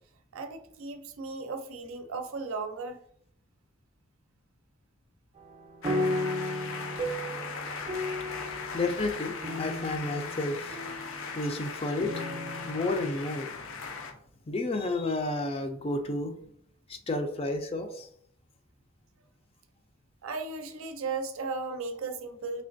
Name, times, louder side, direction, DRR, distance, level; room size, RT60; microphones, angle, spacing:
voice 1, 0.3-3.0 13.8-13.9 20.2-22.6, right 4 dB, 85° right, 0.5 m, -36 dB
sound 1, 5.4-11.3 12.0-13.2, left 1 dB, 25° right, 0.5 m, -35 dB
sound 2, 5.8-14.1, left 5 dB, 75° left, 0.6 m, -39 dB
voice 2, 7.7-14.0 14.5-16.3 16.9-18.1, left 2 dB, 30° left, 0.4 m, -32 dB
3.7 x 3.3 x 2.6 m
head